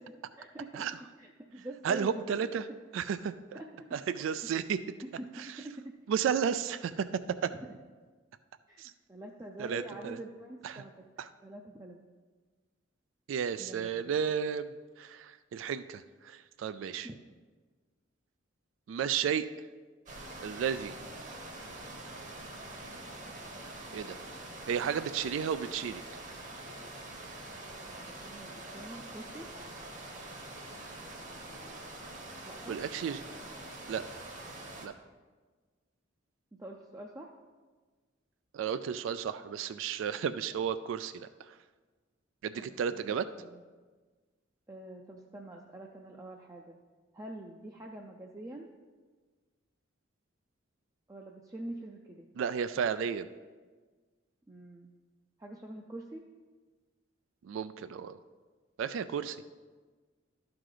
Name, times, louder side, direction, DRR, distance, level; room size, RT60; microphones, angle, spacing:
voice 1, 0.3-0.8 1.2-2.2 3.5-3.7 4.1-4.3 5.0-5.3 5.6-5.9 8.7-8.8 9.1-10.9 11.4-12.0 13.6-14.1 17.0-17.1 27.9-29.5 32.4-32.8 36.5-37.3 42.5-43.6 44.7-46.8 47.1-48.7 51.1-52.3 54.5-54.9 55.4-56.2, right 1 dB, 15° right, 0 dB, 0.4 m, -45 dB
voice 2, 1.8-2.7 2.9-3.6 3.9-4.8 6.1-7.1 7.4-7.5 8.8-8.9 9.6-10.2 10.6-10.8 11.2-11.3 13.3-17.1 18.9-19.5 20.4-21.0 23.9-24.2 24.7-26.0 32.7-33.2 33.9-34.0 34.8-34.9 38.5-41.6 42.4-43.3 52.4-53.3 57.4-58.2 58.8-59.4, right 7 dB, 80° right, 13 dB, 0.3 m, -33 dB
sound 1, 20.1-34.9, right 2 dB, 40° right, 1.0 m, -45 dB
12.5 x 4.8 x 3.9 m, 1.4 s
head